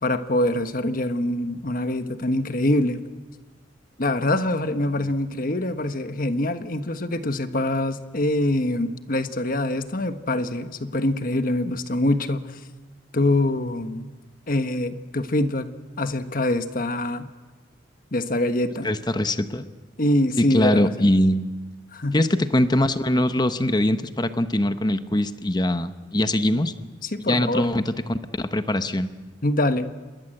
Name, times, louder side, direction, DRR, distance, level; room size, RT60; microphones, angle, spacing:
voice 1, 0.0-3.0 4.0-12.6 13.1-14.1 14.5-15.7 16.0-17.3 18.1-18.9 20.0-20.9 21.9-22.3 27.0-27.6 29.4-29.9, left 1 dB, 45° left, 9 dB, 1.4 m, -24 dB
voice 2, 18.8-19.7 20.4-21.5 22.1-26.7 27.3-29.1, left 1 dB, 20° left, 10 dB, 1.0 m, -22 dB
27.5 x 21.0 x 7.9 m, 1.3 s
head